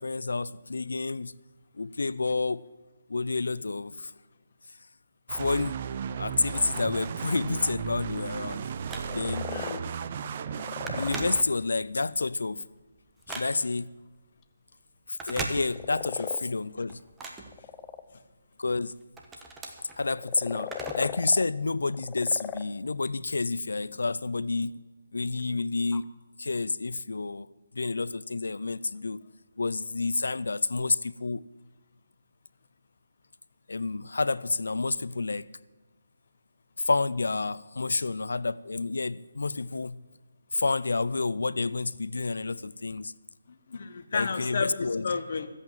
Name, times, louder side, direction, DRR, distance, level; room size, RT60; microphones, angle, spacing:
voice 1, 0.0-1.3 1.7-2.6 3.1-4.1 5.3-5.8 6.2-8.6 9.1-9.5 11.0-12.6 13.3-13.9 15.1-17.0 18.6-19.0 20.0-24.7 25.1-26.0 26.4-27.5 27.7-29.2 29.6-31.4 33.7-35.5 36.8-40.0 40.5-43.1 44.1-45.1, left 3 dB, 80° left, 18 dB, 0.4 m, -29 dB
sound 1, 5.3-11.4, right 7 dB, 40° right, 0.6 m, -35 dB
Telephone, 8.5-9.5 10.0-10.2 10.4-11.9 12.4-13.9 15.1-16.2 16.5-18.2 18.7-21.2 21.5-21.6 22.5-22.6, right 3 dB, 10° right, 1.2 m, -40 dB
sound 2, 9.1-9.8 10.4-11.1 15.6-16.4 17.4-18.0 20.0-21.4 21.9-22.6 23.1-23.2 25.2-25.3 25.6-26.0, left 11 dB, 20° left, 0.6 m, -38 dB
voice 2, 9.5-10.0 43.5-44.8 45.0-45.5, left 5 dB, 55° left, 10 dB, 1.2 m, -32 dB
14.5 x 8.3 x 7.3 m, 1.2 s
figure-of-eight pair, 155°, 0 cm